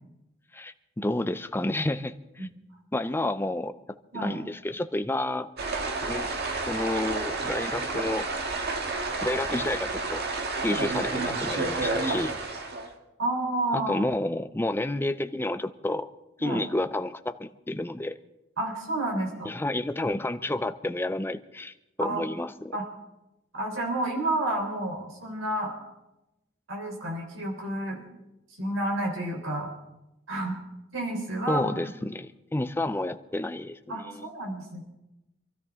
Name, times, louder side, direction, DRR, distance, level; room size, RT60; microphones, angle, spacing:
voice 1, 0.5-2.5 2.9-3.7 4.1-5.5 6.0-6.3 6.7-8.3 9.2-10.2 10.6-12.3 13.7-16.1 16.4-18.2 19.4-22.8 31.5-34.3, left 1 dB, 10° left, 11 dB, 0.6 m, -30 dB
sound 1, 5.6-12.9, right 3 dB, 55° right, 1.7 m, -30 dB
voice 2, 13.2-14.0 16.4-16.6 18.6-19.5 22.0-22.2 22.7-22.9 23.5-25.7 26.7-28.0 28.6-29.7 30.3-30.6 30.9-31.7 33.9-34.8, right 1 dB, 80° right, 0 dB, 3.9 m, -30 dB
26.0 x 13.0 x 3.7 m, 0.94 s
head